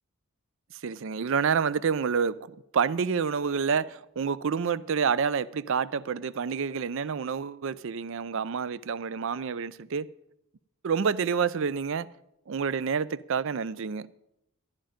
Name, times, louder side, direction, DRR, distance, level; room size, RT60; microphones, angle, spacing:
voice 1, 0.8-10.1 10.8-12.1 12.5-14.1, right 6 dB, 60° right, 0.4 m, -28 dB
13.5 x 10.5 x 5.1 m
head